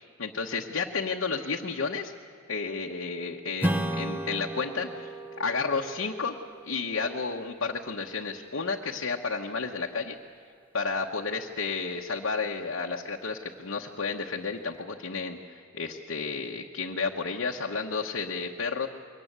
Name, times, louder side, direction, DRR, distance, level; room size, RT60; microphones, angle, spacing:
voice 1, 0.0-2.1 2.5-5.1 5.4-6.3 6.6-10.1 10.7-18.9, left 4 dB, 75° left, 0 dB, 1.1 m, -32 dB
Strum, 3.6-8.5, right 1 dB, 10° right, 0.8 m, -35 dB
23.0 x 18.5 x 8.1 m, 2.4 s
head